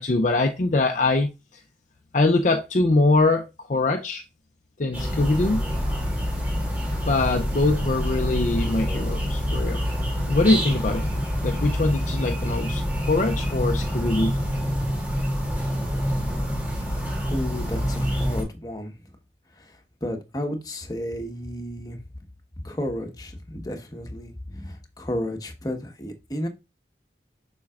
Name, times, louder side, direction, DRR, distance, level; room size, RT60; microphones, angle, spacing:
voice 1, 0.0-1.6 2.1-4.2 4.8-5.7 7.1-9.8 10.3-11.0 11.4-14.4 16.1-16.2, left 2 dB, 45° left, 0.5 m, -23 dB
sound 1, 4.9-18.4, equal, 10° right, 2.5 m, -26 dB
voice 2, 17.3-18.9 19.6-19.7 20.0-22.0 22.6-26.5, left 1 dB, 20° left, 1.2 m, -32 dB
7.3 x 5.9 x 2.4 m
head